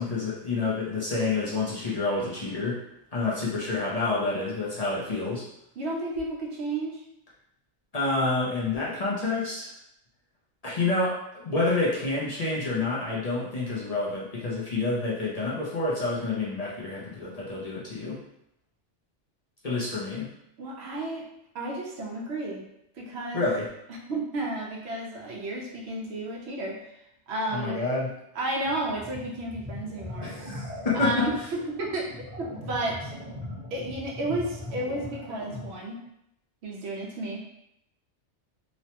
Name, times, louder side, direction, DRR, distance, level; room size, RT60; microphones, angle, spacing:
voice 1, 0.0-2.8 3.1-5.4 7.9-9.7 10.6-18.2 19.6-20.3 23.3-23.7 27.5-28.1 30.2-31.3, left 3 dB, 45° left, -7 dB, 0.5 m, -28 dB
voice 2, 5.8-7.0 20.6-21.3 21.5-22.6 23.0-23.5 24.1-27.8 28.4-30.3 30.9-33.1 33.7-36.0 36.6-37.4, right 2 dB, 70° right, -2 dB, 0.9 m, -32 dB
sound 1, 28.6-35.8, left 1 dB, 15° right, 0.8 m, -40 dB
3.0 x 2.1 x 2.8 m, 0.81 s
omnidirectional pair, 1.2 m